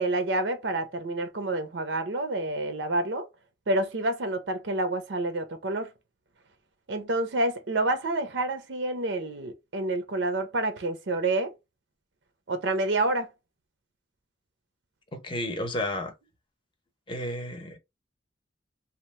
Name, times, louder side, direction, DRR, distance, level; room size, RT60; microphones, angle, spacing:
voice 1, 0.0-3.3 3.7-5.9 6.9-11.5 12.5-13.3, right 2 dB, 80° right, 0.6 m, -28 dB
voice 2, 15.1-16.1 17.1-17.8, left 1 dB, 30° left, 0.6 m, -32 dB
2.8 x 2.1 x 3.1 m
head